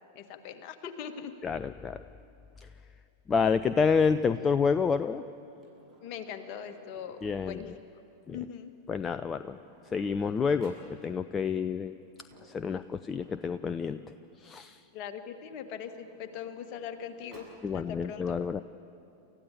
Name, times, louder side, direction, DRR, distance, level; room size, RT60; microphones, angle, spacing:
voice 1, 0.2-1.3 6.0-7.7 8.3-8.7 14.9-17.5 17.7-18.3, left 8 dB, 40° left, 7 dB, 1.7 m, -41 dB
voice 2, 1.4-2.0 3.3-5.2 7.2-7.7 8.3-8.4 8.9-9.6 9.9-10.8 11.0-11.9 12.4-14.0 14.4-14.8 17.6-18.6, left 5 dB, 20° left, 12 dB, 0.5 m, -28 dB
Sliding door, 4.8-7.7 8.7-8.8 9.0-10.9 12.0-14.5 15.3-17.6, right 1 dB, 20° right, 7.9 m, -58 dB
29.0 x 14.5 x 8.6 m, 2.7 s
figure-of-eight pair, 90°, 0 cm